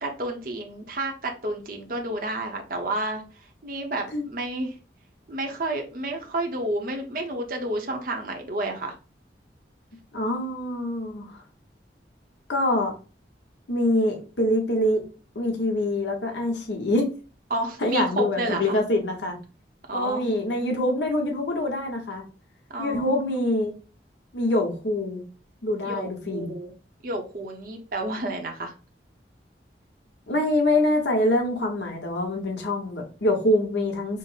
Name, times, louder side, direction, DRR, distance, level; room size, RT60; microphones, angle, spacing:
voice 1, 0.0-4.8 5.3-8.9 17.5-18.8 19.9-20.4 22.7-23.4 25.8-26.7 27.0-28.7, right 2 dB, 50° right, 3 dB, 0.8 m, -31 dB
voice 2, 10.1-11.3 12.5-12.9 13.7-15.0 15.3-17.1 17.8-19.4 19.9-22.2 22.8-23.7 24.3-25.2 25.6-26.5 30.3-34.2, left 1 dB, 85° left, 2 dB, 1.0 m, -25 dB
5.1 x 2.1 x 4.0 m, 0.35 s
head